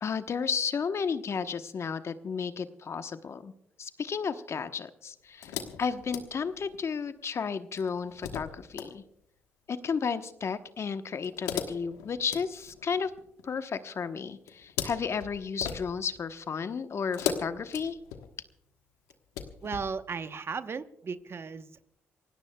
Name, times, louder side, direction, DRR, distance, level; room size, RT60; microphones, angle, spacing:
voice 1, 0.0-3.5 3.8-9.0 9.7-13.1 13.4-18.0, left 6 dB, 50° left, 10 dB, 1.0 m, -33 dB
sound 1, 5.4-6.9 7.8-8.9 11.2-13.4 14.5-16.2 17.1-18.5 19.1-19.9, left 8 dB, 85° left, 1.2 m, -38 dB
voice 2, 19.6-21.8, right 5 dB, 45° right, 11 dB, 1.0 m, -36 dB
27.5 x 17.0 x 2.3 m, 0.78 s
hypercardioid pair, 50°, 6 cm